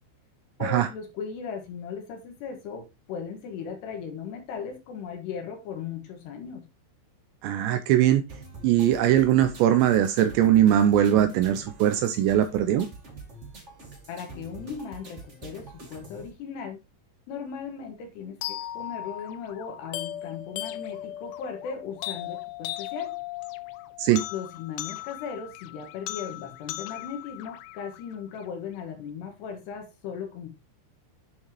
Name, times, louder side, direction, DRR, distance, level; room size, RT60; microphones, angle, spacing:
voice 1, 0.6-6.6 14.1-16.8 17.3-23.1 24.3-30.5, left 6 dB, 70° left, 3.2 m, -37 dB
voice 2, 7.4-8.2 8.6-12.9 24.0-24.2, right 11 dB, 80° right, 2.6 m, -21 dB
sound 1, 8.3-16.3, right 3 dB, 35° right, 1.1 m, -45 dB
sound 2, 18.4-28.4, left 14 dB, 90° left, 2.4 m, -37 dB
9.1 x 6.9 x 3.0 m
omnidirectional pair, 5.6 m